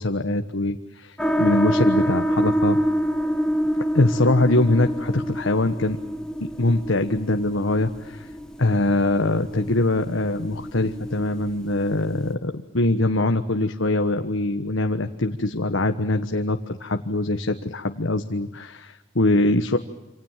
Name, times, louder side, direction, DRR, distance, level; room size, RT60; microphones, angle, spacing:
voice 1, 0.0-2.8 3.9-6.0 6.6-8.3 8.6-19.8, left 2 dB, 85° left, 6 dB, 1.4 m, -23 dB
sound 1, 1.2-12.3, equal, 5° left, 1.6 m, -27 dB
28.0 x 26.5 x 7.5 m, 1.0 s
head